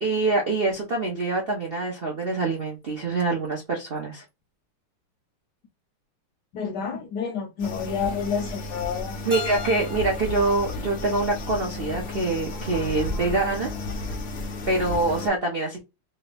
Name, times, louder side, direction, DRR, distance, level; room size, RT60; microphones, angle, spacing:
voice 1, 0.0-4.2 9.3-13.7 14.7-15.8, right 3 dB, 70° right, 0.5 m, -25 dB
voice 2, 6.5-9.2, left 6 dB, 70° left, 1.1 m, -29 dB
sound 1, 7.6-15.3, left 2 dB, 85° left, 0.5 m, -33 dB
Keyboard (musical), 9.3-12.1, left 3 dB, 20° right, 0.8 m, -39 dB
3.3 x 2.7 x 3.3 m
omnidirectional pair, 2.4 m